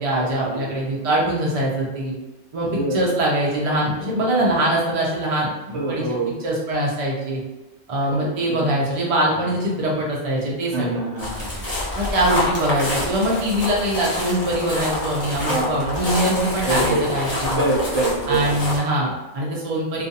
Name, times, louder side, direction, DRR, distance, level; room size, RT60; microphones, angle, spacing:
voice 1, 0.0-2.1 2.5-6.0 6.4-7.4 7.9-11.0 11.9-17.6 18.3-20.1, right 1 dB, 45° right, -4 dB, 0.5 m, -23 dB
voice 2, 5.7-6.3 8.1-8.6 9.4-9.5 10.7-11.6 15.5-15.7 16.6-17.1 17.6-18.5, right 2 dB, 65° right, -4 dB, 1.1 m, -25 dB
sound 1, 11.2-18.8, left 1 dB, 40° left, 0.6 m, -27 dB
2.4 x 2.4 x 2.7 m, 1.1 s
omnidirectional pair, 1.3 m